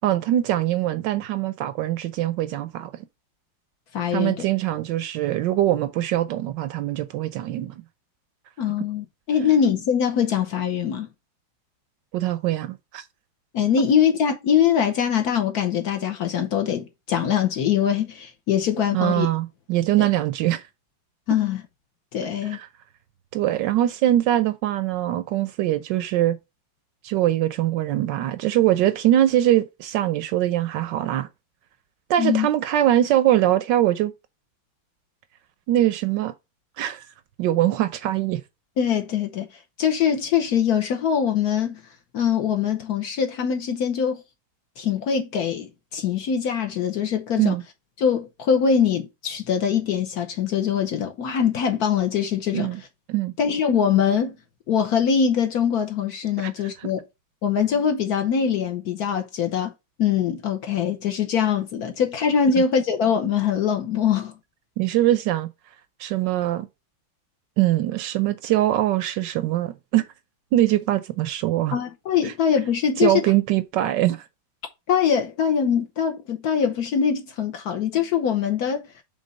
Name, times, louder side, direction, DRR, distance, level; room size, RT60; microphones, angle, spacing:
voice 1, 0.0-2.9 4.1-7.7 12.1-13.0 18.9-20.6 22.4-22.7 23.3-26.4 27.0-31.3 32.1-34.1 35.7-36.3 36.8-37.0 37.4-38.4 47.4-47.6 52.5-52.8 53.1-53.3 56.4-56.5 56.8-56.9 64.8-65.5 66.0-66.7 67.6-70.1 70.5-71.8 72.2-72.3 73.0-74.2, right 13 dB, 75° right, 1.1 m, -22 dB
voice 2, 3.9-4.4 8.6-11.1 13.5-19.3 20.0-20.1 21.3-21.6 22.1-22.6 32.2-32.5 38.8-39.5 39.8-41.8 42.1-44.2 44.8-47.6 48.0-52.7 53.4-54.3 54.7-57.0 57.4-59.7 60.0-64.3 71.7-73.2 74.9-78.8, left 8 dB, 60° left, 1.1 m, -23 dB
5.3 x 3.6 x 5.1 m
omnidirectional pair, 2.2 m